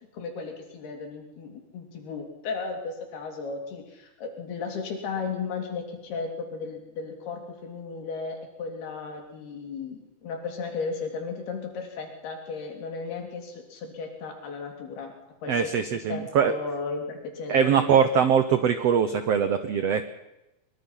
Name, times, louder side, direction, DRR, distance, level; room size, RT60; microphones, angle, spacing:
voice 1, 0.1-15.1 15.4-18.0, left 4 dB, 90° left, 3 dB, 5.2 m, -35 dB
voice 2, 15.5-16.5 17.5-20.0, right 7 dB, 90° right, 10 dB, 1.4 m, -22 dB
23.0 x 22.5 x 5.7 m, 0.95 s
omnidirectional pair, 4.4 m